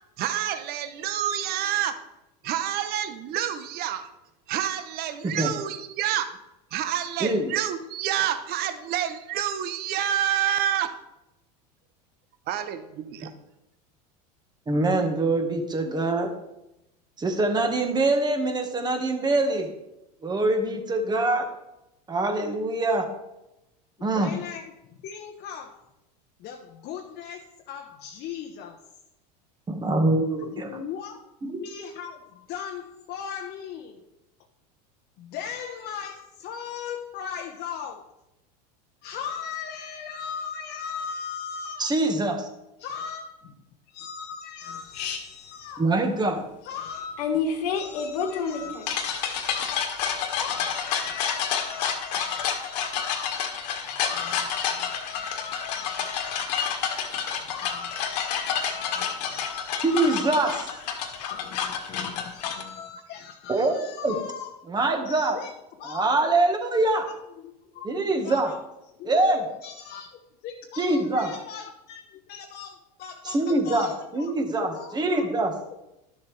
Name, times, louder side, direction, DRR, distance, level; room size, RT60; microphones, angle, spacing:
voice 1, 0.2-2.0 2.4-4.1 4.5-6.3 6.7-10.9 12.5-13.3, right 10 dB, 50° right, 0.9 m, -28 dB
voice 2, 7.2-7.5 14.7-16.3 17.2-19.7 20.2-21.5 22.1-23.1 24.0-24.3 29.7-30.7 31.4-31.6 41.8-42.5 45.8-46.4 59.8-60.5 63.5-63.8 64.0-64.2 64.7-65.4 65.9-67.1 67.8-68.5 69.0-69.4 70.8-71.3 73.2-75.5, right 2 dB, 20° right, 1.5 m, -24 dB
voice 3, 24.0-24.7 25.0-25.8 26.4-28.8 30.4-31.2 31.6-34.0 35.2-38.1 39.0-41.9 42.8-43.6 43.9-45.9 46.6-47.5 47.7-49.7 50.4-53.3 54.0-56.9 57.5-60.5 61.2-64.6 65.0-65.5 65.8-66.1 67.1-67.2 67.4-68.6 69.0-69.4 69.6-74.3 74.7-75.3, left 7 dB, 50° left, 1.0 m, -38 dB
sound 1, 44.9-45.2 47.2-62.6, left 7 dB, 80° left, 1.7 m, -29 dB
12.0 x 7.1 x 3.3 m
supercardioid pair, 105°, 21 cm